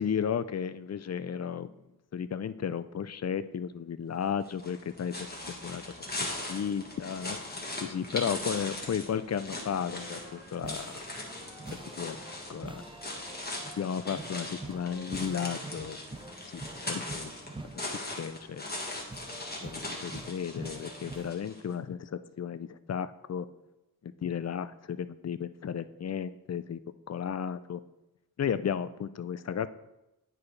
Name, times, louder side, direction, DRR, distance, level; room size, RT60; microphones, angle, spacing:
voice 1, 0.0-1.7 2.1-5.8 6.5-7.4 7.8-11.0 12.0-12.2 12.5-12.8 13.8-16.0 16.4-17.3 17.9-18.6 19.6-23.5 24.0-26.8 27.1-27.8 28.4-29.7, left 8 dB, 45° left, 14 dB, 0.4 m, -34 dB
sound 1, 4.4-21.6, left 1 dB, 25° left, 1.5 m, -40 dB
Wind instrument woodwind instrument, 9.5-12.3 12.7-15.8, right 2 dB, 90° right, 1.9 m, -55 dB
sound 2, 9.9-21.3, right 2 dB, 15° right, 0.4 m, -46 dB
10.5 x 4.7 x 3.2 m, 0.94 s
wide cardioid pair, 60°, 38 cm